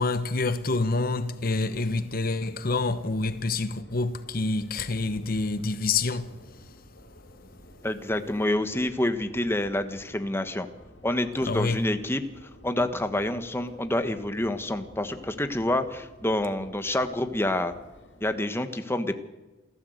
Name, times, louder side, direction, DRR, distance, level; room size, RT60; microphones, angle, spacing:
voice 1, 0.0-6.7 11.5-11.8, left 3 dB, 55° left, 1.0 m, -27 dB
Subway metro underground, 1.1-18.5, equal, 90° left, 4.1 m, -52 dB
voice 2, 7.8-10.7 11.0-17.7 18.2-19.1, left 1 dB, 15° left, 1.4 m, -28 dB
28.0 x 14.5 x 8.0 m
head